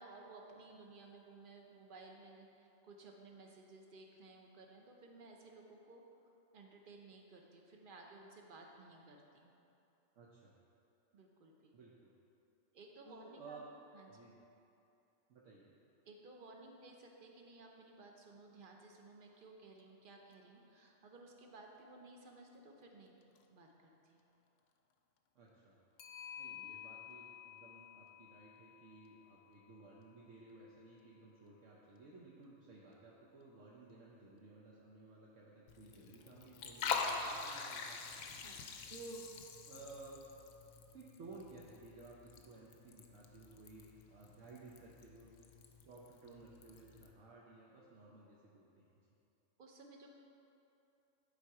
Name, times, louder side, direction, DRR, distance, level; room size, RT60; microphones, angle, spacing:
voice 1, 0.0-9.6 11.1-11.8 12.7-13.6 13.9-14.3 16.0-23.1 23.5-24.2 38.4-38.8 49.6-50.1, right 3 dB, 45° right, 1 dB, 0.8 m, -57 dB
voice 2, 10.1-10.5 11.7-12.1 13.0-13.7 14.1-14.3 15.3-15.7 25.3-25.8 26.4-38.2 38.9-39.3 39.7-40.2 40.9-45.5 45.8-48.8, right 3 dB, 65° right, -5 dB, 1.2 m, -56 dB
Clock, 19.8-19.9 20.3-20.4 23.2-23.4 26.0-30.2, left 10 dB, 70° left, 0.9 m, -53 dB
Liquid, 35.7-47.1, left 5 dB, 85° left, 1.0 m, -45 dB
10.5 x 4.3 x 4.7 m, 2.8 s
omnidirectional pair, 1.4 m